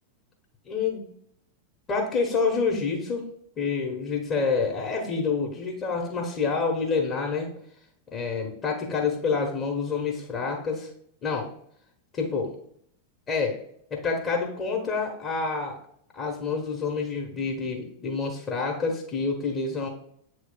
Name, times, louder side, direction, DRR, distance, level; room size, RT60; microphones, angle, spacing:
voice 1, 0.7-1.0 1.9-3.2 3.6-7.5 8.1-10.9 11.2-11.5 12.1-12.5 13.3-13.6 13.9-15.8 16.1-19.9, left 4 dB, 30° left, 0 dB, 1.3 m, -27 dB
8.0 x 3.1 x 3.8 m, 0.66 s
figure-of-eight pair, 90°, 0 cm